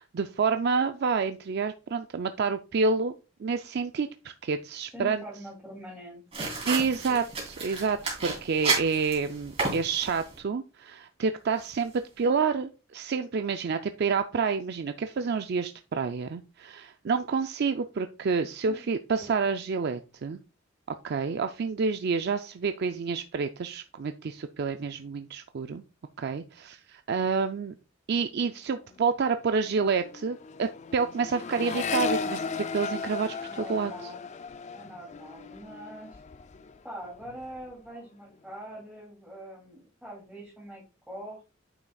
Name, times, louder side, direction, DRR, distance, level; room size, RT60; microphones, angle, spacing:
voice 1, 0.0-5.2 6.7-20.4 21.0-25.8 26.2-27.7 28.1-34.1, right 5 dB, 55° right, 8 dB, 0.4 m, -29 dB
voice 2, 4.9-7.2 18.6-18.8 19.1-19.3 33.4-34.2 34.7-36.2 36.8-41.4, equal, ahead, -6 dB, 2.7 m, -44 dB
sound 1, 6.3-10.4, right 4 dB, 30° right, 3.1 m, -32 dB
Accelerating revving vroom, 28.8-29.0 29.3-36.8 37.1-37.7, left 5 dB, 35° left, 0.4 m, -36 dB
9.0 x 6.3 x 2.3 m, 0.30 s
head